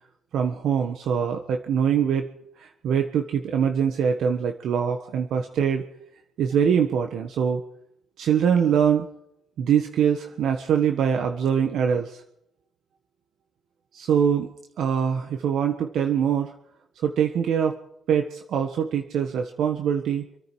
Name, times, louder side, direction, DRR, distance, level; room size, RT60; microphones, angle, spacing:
voice 1, 0.3-2.3 2.6-5.8 6.4-7.6 8.2-9.1 9.6-12.2 13.9-14.5 14.8-16.5 17.0-17.8 18.1-20.2, right 7 dB, 75° right, 5 dB, 1.4 m, -23 dB
27.5 x 9.6 x 4.7 m, 0.77 s
cardioid pair, 90°, 0 cm